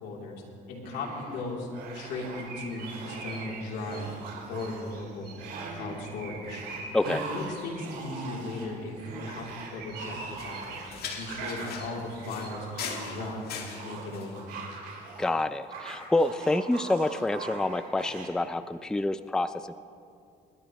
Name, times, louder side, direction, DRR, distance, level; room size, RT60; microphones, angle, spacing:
voice 1, 0.0-0.4 0.7-1.7 1.9-4.1 4.5-5.3 5.7-6.6 7.0-10.8 11.1-12.7 12.9-13.4 13.8-14.4, left 2 dB, 85° left, -2 dB, 3.2 m, -37 dB
sound 1, 0.8-1.4 1.7-2.5 2.8-3.5 3.8-5.0 5.4-6.1 6.4-15.3 15.6-18.3, right 4 dB, 90° right, 3.9 m, -42 dB
sound 2, 1.8-13.4, right 4 dB, 65° right, 3.7 m, -47 dB
voice 2, 6.9-7.2 15.2-19.7, left 2 dB, 5° left, 12 dB, 0.4 m, -27 dB
sound 3, 10.4-14.4, left 6 dB, 65° left, 2.1 m, -40 dB
28.5 x 12.0 x 3.1 m, 2.4 s
cardioid pair, 110°, 17 cm